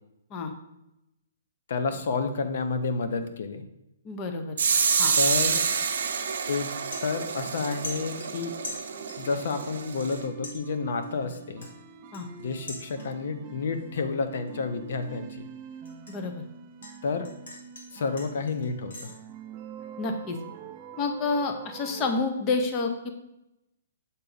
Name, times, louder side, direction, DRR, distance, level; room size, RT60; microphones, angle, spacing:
voice 1, 1.7-3.6 5.2-5.7 6.5-6.7 7.0-8.6 9.2-11.7 12.4-15.5 17.0-17.3 17.9-19.1, left 4 dB, 55° left, 8 dB, 0.7 m, -30 dB
voice 2, 4.0-4.6 5.0-5.2 12.1-12.3 16.1-16.4 20.0-20.4 21.0-23.1, left 3 dB, 20° left, 5 dB, 0.6 m, -29 dB
sound 1, 4.6-10.2, right 6 dB, 60° right, 0.7 m, -28 dB
sound 2, 6.0-6.2 6.6-7.6 7.8-9.3 9.6-10.2 10.4-13.4 13.7-14.1 14.5-16.9 17.2-19.1, left 2 dB, 85° left, 2.1 m, -43 dB
sound 3, 8.9-22.2, right 6 dB, 25° right, 0.3 m, -45 dB
7.0 x 4.0 x 3.9 m, 0.89 s
hypercardioid pair, 165°, 0 cm